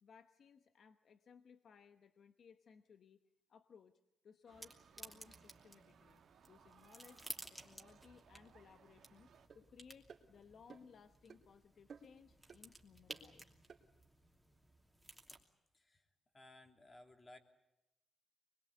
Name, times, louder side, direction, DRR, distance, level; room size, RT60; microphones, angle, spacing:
voice 1, 0.0-3.2 3.5-6.2 6.5-7.2 7.5-13.5, left 6 dB, 65° left, 9 dB, 1.0 m, -63 dB
sound 1, 4.5-15.4, right 1 dB, ahead, 2.8 m, -56 dB
sound 2, 4.5-9.5, right 8 dB, 75° right, 1.4 m, -66 dB
sound 3, 9.5-9.6 10.1-10.2 10.7-10.9 11.3-11.4 11.9-12.2 12.5-12.6 13.1-13.3 13.7-13.8, right 5 dB, 60° right, 3.2 m, -56 dB
voice 2, 15.7-16.0 16.3-17.4, left 2 dB, 30° left, 4 dB, 3.1 m, -59 dB
24.0 x 22.0 x 8.6 m, 0.91 s
cardioid pair, 90°, 0 cm